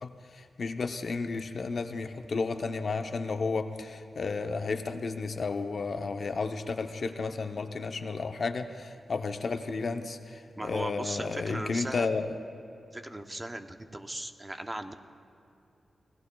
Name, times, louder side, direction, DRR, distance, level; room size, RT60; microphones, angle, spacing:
voice 1, 0.0-12.3, left 4 dB, 55° left, 7 dB, 0.7 m, -32 dB
voice 2, 10.6-12.1 12.9-14.9, right 1 dB, 20° right, 7 dB, 0.7 m, -38 dB
27.5 x 17.5 x 2.3 m, 2.8 s
wide cardioid pair, 110°, 0 cm